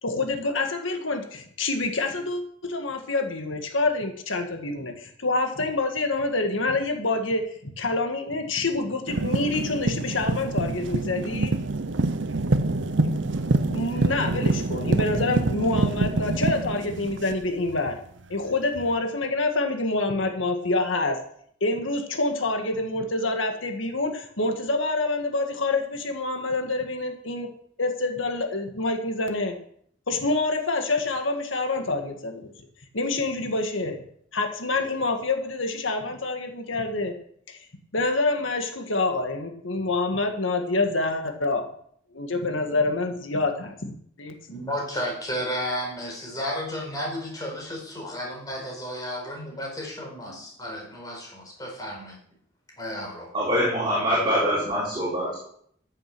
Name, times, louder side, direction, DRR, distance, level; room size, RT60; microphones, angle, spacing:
voice 1, 0.0-11.5 13.0-13.3 13.6-18.0 18.3-21.2 21.6-27.5 27.8-29.5 30.1-32.5 32.9-34.0 34.3-37.1 37.5-37.6 37.9-41.7 42.1-43.9 44.2-44.6, left 2 dB, 85° left, 5 dB, 1.8 m, -27 dB
sound 1, 9.1-17.9 18.8-18.9, right 2 dB, 70° right, 0.8 m, -26 dB
voice 2, 44.5-52.2 52.8-53.3, equal, 20° left, -1 dB, 4.6 m, -33 dB
voice 3, 53.3-55.4, equal, 25° right, -8 dB, 4.3 m, -24 dB
14.0 x 7.7 x 6.1 m, 0.64 s
head